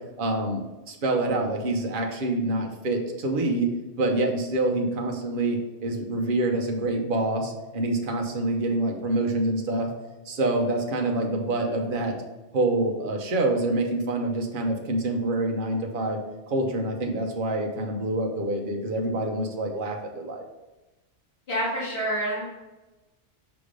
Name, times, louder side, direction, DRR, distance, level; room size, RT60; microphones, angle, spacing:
voice 1, 0.2-0.6 0.9-3.7 4.0-9.9 10.3-12.1 12.5-16.2 16.5-20.4, right 2 dB, 50° right, 2 dB, 1.0 m, -26 dB
voice 2, 21.5-22.4, right 1 dB, 60° left, -10 dB, 2.1 m, -27 dB
5.9 x 3.5 x 5.0 m, 1.1 s
omnidirectional pair, 1.2 m